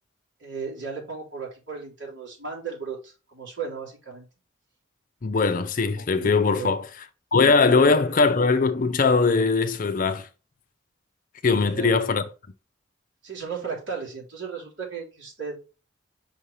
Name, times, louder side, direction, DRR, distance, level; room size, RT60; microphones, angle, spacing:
voice 1, 0.4-4.3 6.0-6.8 7.7-8.2 11.7-12.0 13.2-15.6, right 5 dB, 60° right, 3.3 m, -35 dB
voice 2, 5.2-6.9 7.3-10.3 11.4-12.2, left 4 dB, 45° left, 0.5 m, -20 dB
5.5 x 3.3 x 5.4 m
head